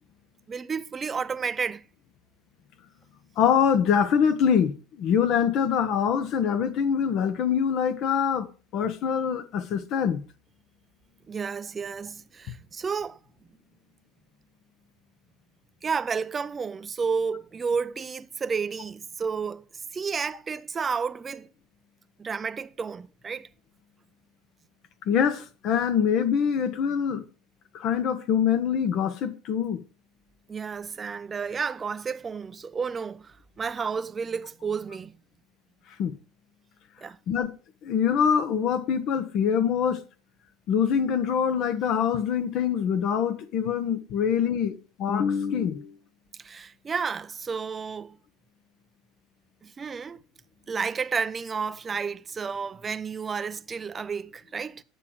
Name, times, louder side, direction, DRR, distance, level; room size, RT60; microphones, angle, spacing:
voice 1, 0.5-1.8 11.3-13.2 15.8-19.6 19.9-21.5 22.2-23.5 30.5-35.1 37.0-37.2 46.4-48.2 49.6-50.2 50.7-54.8, right 5 dB, 25° right, 0.5 m, -31 dB
voice 2, 3.4-8.5 8.7-10.2 25.1-27.2 27.7-29.8 36.0-36.1 37.3-37.5 37.8-40.0 40.7-45.9, left 7 dB, 55° left, 1.2 m, -24 dB
9.7 x 7.3 x 4.8 m
supercardioid pair, 110°, 0 cm